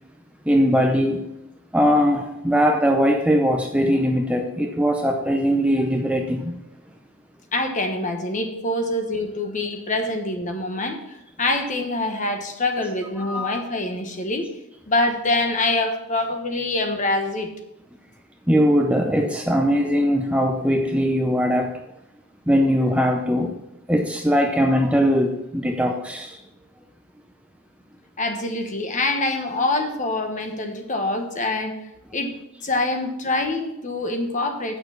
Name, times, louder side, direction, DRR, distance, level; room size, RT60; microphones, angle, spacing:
voice 1, 0.5-1.3 1.7-6.6 13.2-13.6 18.5-21.8 22.5-23.6 23.9-26.4, equal, 5° right, 0.5 m, -20 dB
voice 2, 7.5-14.5 14.9-17.5 28.2-31.7 32.1-32.3 32.6-34.8, left 2 dB, 35° left, 1.1 m, -25 dB
8.7 x 6.7 x 5.7 m
head